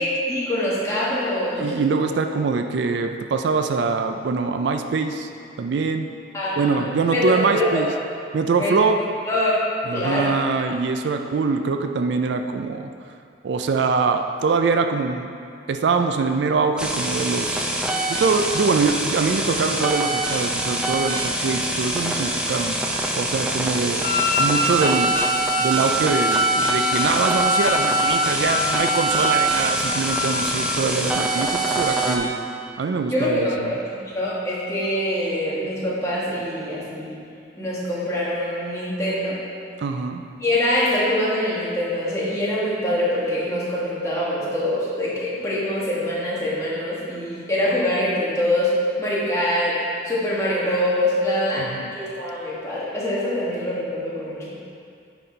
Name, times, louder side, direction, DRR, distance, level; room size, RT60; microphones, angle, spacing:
voice 1, 0.0-1.7 6.3-7.8 8.6-8.7 9.3-9.5 9.9-10.3 31.4-31.5 33.1-37.2 37.6-39.3 40.4-48.7 49.0-49.7 50.0-51.6 51.9-54.6, left 1 dB, 15° left, -8 dB, 1.4 m, -24 dB
voice 2, 1.6-5.3 5.6-6.1 6.6-7.9 8.3-9.0 9.9-12.9 13.4-15.3 15.7-17.8 18.1-22.8 23.1-25.2 25.6-32.3 32.8-33.7 39.8-40.2 51.6-52.0, right 4 dB, 70° right, 6 dB, 0.4 m, -23 dB
sound 1, 16.8-32.2, right 1 dB, 5° right, 0.4 m, -25 dB
Wind instrument woodwind instrument, 24.0-30.6, left 1 dB, 50° left, 0.5 m, -24 dB
9.1 x 4.2 x 4.3 m, 2.4 s
head